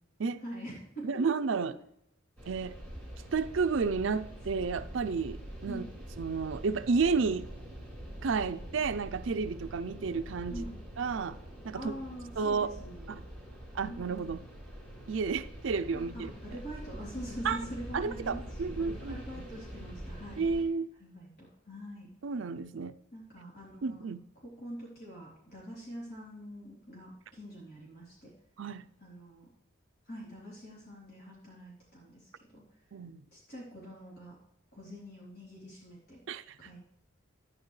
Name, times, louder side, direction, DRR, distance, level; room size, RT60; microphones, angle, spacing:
voice 1, 0.4-1.2 5.6-5.9 10.5-10.8 11.7-13.2 13.9-14.3 15.9-20.4 21.0-22.1 23.1-24.1 24.4-28.3 29.0-29.5 30.0-32.6 33.3-34.3 34.7-36.2 36.6-36.8, equal, 50° left, -6 dB, 3.4 m, -44 dB
voice 2, 1.0-1.7 2.5-2.8 3.3-5.8 6.2-7.5 8.2-10.6 11.0-11.4 11.6-11.9 12.4-12.7 13.1-13.2 13.7-14.4 15.1-16.3 17.4-17.6 17.9-19.2 20.4-20.9 22.2-22.9 23.8-24.2 28.6-28.9 32.9-33.2 36.3-36.6, right 5 dB, 70° right, 11 dB, 0.5 m, -31 dB
sound 1, 2.4-20.6, right 1 dB, 10° left, 3.7 m, -45 dB
12.0 x 9.8 x 3.2 m, 0.75 s
head